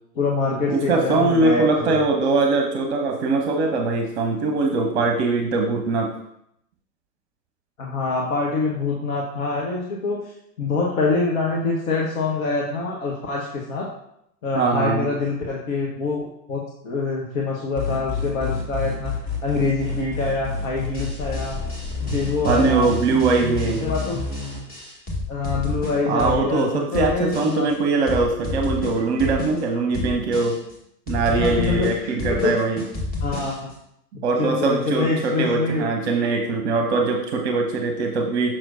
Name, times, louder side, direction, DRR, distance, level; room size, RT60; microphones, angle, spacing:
voice 1, 0.1-2.0 7.8-10.2 10.6-13.9 14.4-19.2 19.4-21.6 22.0-23.0 23.8-24.2 25.3-27.7 31.4-32.5 33.2-33.5 34.4-35.9, left 3 dB, 55° left, -3 dB, 1.2 m, -25 dB
voice 2, 0.7-6.1 14.5-15.1 22.4-23.8 26.0-30.6 31.1-32.8 34.2-38.5, right 3 dB, 40° right, 3 dB, 0.8 m, -21 dB
sound 1, 17.8-24.6, left 3 dB, ahead, 0.3 m, -29 dB
sound 2, 20.9-26.6 26.9-27.7 28.1-29.6 29.9-30.7 31.1-33.7, left 2 dB, 20° left, 1.6 m, -31 dB
6.0 x 6.0 x 2.6 m, 0.77 s
figure-of-eight pair, 100°, 49 cm